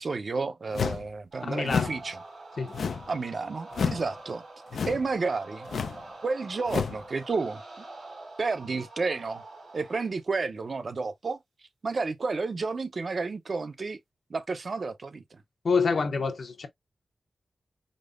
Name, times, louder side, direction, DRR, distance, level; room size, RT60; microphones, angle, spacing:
voice 1, 0.0-2.2 3.1-4.4 4.9-5.7 6.2-7.8 8.4-9.4 9.7-11.4 11.8-14.0 14.3-15.4, right 4 dB, 50° right, 0.6 m, -31 dB
sound 1, 0.7-1.1 1.7-2.0 2.7-3.2 3.7-4.1 4.7-5.1 5.7-6.0 6.7-7.0, left 6 dB, 90° left, 0.4 m, -30 dB
sound 2, 1.3-10.2, right 2 dB, 70° right, 1.8 m, -46 dB
voice 2, 1.4-1.9 2.6-2.7 15.6-16.7, left 4 dB, 60° left, 0.8 m, -27 dB
5.2 x 2.0 x 2.4 m
wide cardioid pair, 125°, 0 cm